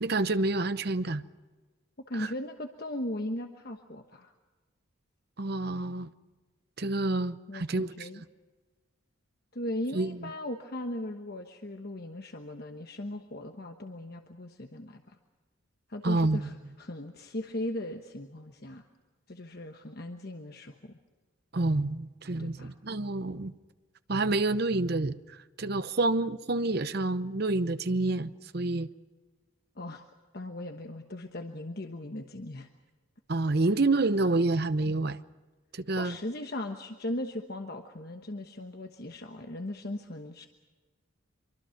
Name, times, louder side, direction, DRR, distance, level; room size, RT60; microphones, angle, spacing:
voice 1, 0.0-1.2 2.2-2.3 5.4-6.1 6.8-8.1 9.9-10.2 16.0-16.4 21.5-23.5 24.1-25.1 25.6-28.9 33.3-35.2 35.7-36.2, right 2 dB, 50° right, 0.8 m, -28 dB
voice 2, 2.1-4.3 7.5-8.2 9.5-15.2 15.9-18.8 19.3-21.0 22.4-22.7 29.8-30.0 30.3-32.7 36.0-40.5, left 1 dB, 50° left, 1.2 m, -38 dB
25.0 x 24.0 x 5.9 m
head